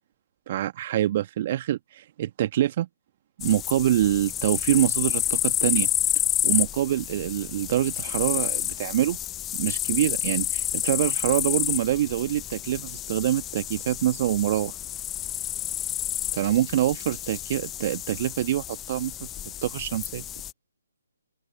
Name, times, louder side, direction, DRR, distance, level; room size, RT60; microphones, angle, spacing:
voice 1, 0.5-2.9 3.4-5.9 6.4-9.2 9.5-14.8 16.3-19.3 19.6-20.2, right 12 dB, 35° right, 1.5 m, -25 dB
sound 1, 3.4-20.5, left 12 dB, 15° left, 0.5 m, -30 dB
open air
figure-of-eight pair, 140°, 0 cm